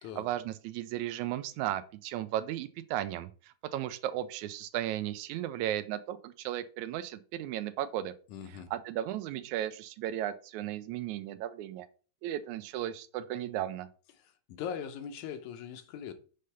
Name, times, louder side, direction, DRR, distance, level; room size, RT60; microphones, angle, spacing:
voice 1, 0.2-3.3 3.7-8.1 8.7-11.9 12.2-13.9, right 12 dB, 85° right, 2.0 m, -35 dB
voice 2, 8.3-8.7 14.2-16.1, left 8 dB, 90° left, 2.2 m, -41 dB
6.6 x 3.4 x 5.5 m
omnidirectional pair, 3.3 m